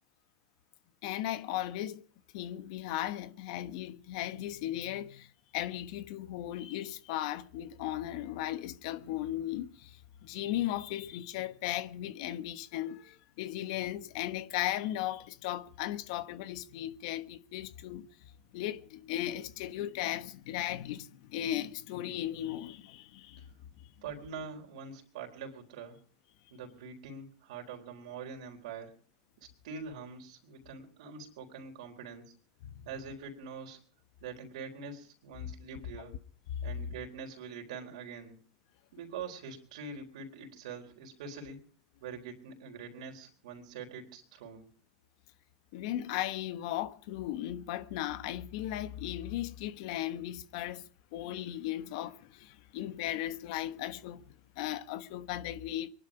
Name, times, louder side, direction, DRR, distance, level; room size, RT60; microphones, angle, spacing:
voice 1, 1.0-2.0 2.3-18.1 18.5-23.5 23.8-23.9 32.6-32.9 45.7-55.9, left 13 dB, 65° left, 1.2 m, -37 dB
voice 2, 24.0-26.0 26.5-28.9 29.4-32.3 32.8-33.8 34.2-36.2 36.6-38.4 38.9-41.6 42.0-44.7, right 5 dB, 75° right, 4.1 m, -44 dB
23.5 x 11.5 x 5.1 m
hypercardioid pair, 105°, 3 cm